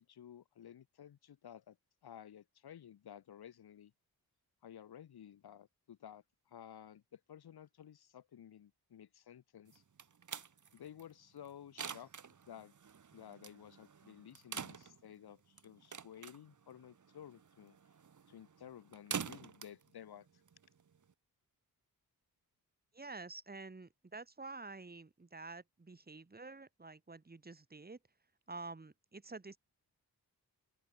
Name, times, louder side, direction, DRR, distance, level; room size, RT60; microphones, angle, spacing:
voice 1, 0.0-1.8 2.0-3.9 4.6-9.8 10.7-12.1 12.5-12.7 13.1-17.8 18.3-20.3, left 9 dB, 90° left, 1.6 m, -54 dB
sound 1, 9.7-21.1, right 6 dB, 50° right, 1.9 m, -48 dB
voice 2, 22.9-28.0 28.5-29.6, right 3 dB, 25° right, 3.5 m, -49 dB
open air
wide cardioid pair, 110°, 37 cm